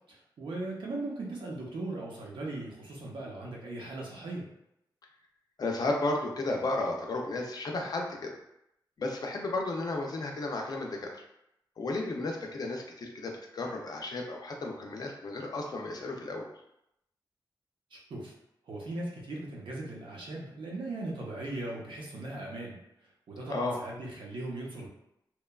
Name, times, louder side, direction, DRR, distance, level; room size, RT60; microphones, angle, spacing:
voice 1, 0.1-4.4 17.9-18.3 18.7-22.8 23.3-24.9, right 2 dB, 80° right, -3 dB, 0.7 m, -38 dB
voice 2, 5.6-8.4 9.0-11.2 11.8-16.5 23.5-23.8, left 2 dB, 50° left, 1 dB, 0.4 m, -33 dB
2.9 x 2.2 x 2.2 m, 0.82 s
wide cardioid pair, 175°, 8 cm